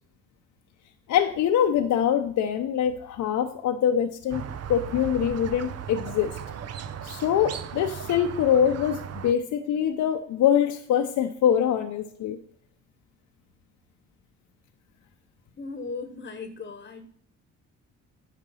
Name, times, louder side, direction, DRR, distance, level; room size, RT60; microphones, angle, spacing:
voice 1, 1.1-4.4 4.7-6.3 7.0-12.4, left 9 dB, 75° left, 5 dB, 0.8 m, -24 dB
Squeak, 4.3-9.3, right 8 dB, 55° right, 0.8 m, -37 dB
voice 2, 15.6-17.1, left 4 dB, 30° left, 9 dB, 1.1 m, -37 dB
10.0 x 5.3 x 5.6 m, 0.62 s
cardioid pair, 90°, 30 cm